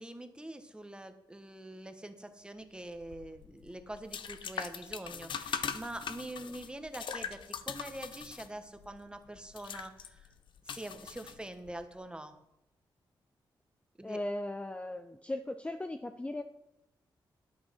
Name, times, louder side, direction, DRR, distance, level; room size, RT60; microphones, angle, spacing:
voice 1, 0.0-10.3 10.6-12.4 14.0-14.2, right 1 dB, 10° right, 8 dB, 1.2 m, -45 dB
sound 1, 2.9-11.8, left 7 dB, 75° left, 0.7 m, -42 dB
voice 2, 14.0-16.4, left 1 dB, 15° left, 7 dB, 0.5 m, -37 dB
10.5 x 8.9 x 5.6 m, 0.88 s
cardioid pair, 85°, 8 cm